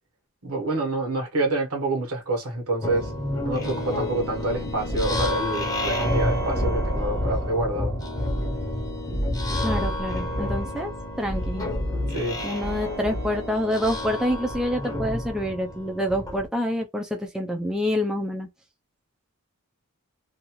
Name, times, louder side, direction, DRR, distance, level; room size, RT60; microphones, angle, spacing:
voice 1, 0.4-3.1 3.4-7.9 12.1-12.4, right 2 dB, 80° right, 1.1 m, -27 dB
sound 1, 2.8-16.5, left 1 dB, 15° left, 0.7 m, -28 dB
voice 2, 9.6-10.9 11.2-11.7 12.4-18.5, left 1 dB, 5° right, 0.3 m, -27 dB
2.6 x 2.3 x 2.9 m
head